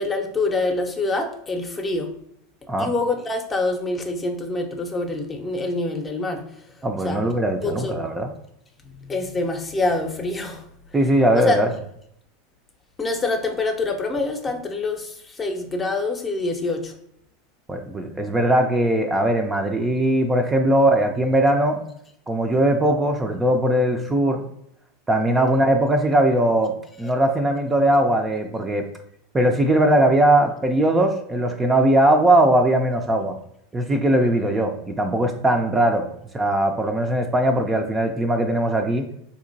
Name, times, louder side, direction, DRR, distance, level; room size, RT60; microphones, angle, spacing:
voice 1, 0.0-2.1 2.8-6.7 7.0-7.2 7.6-8.0 8.8-11.0 11.3-11.7 13.0-16.9 27.0-27.1, left 2 dB, 25° left, 4 dB, 0.7 m, -26 dB
voice 2, 6.8-8.3 10.9-11.7 17.7-21.8 22.3-24.4 25.1-26.7 27.0-28.8 29.3-33.3 33.7-36.0 36.3-39.1, right 1 dB, 15° right, 3 dB, 0.5 m, -20 dB
4.2 x 2.8 x 2.6 m, 0.73 s
hypercardioid pair, 90°, 0 cm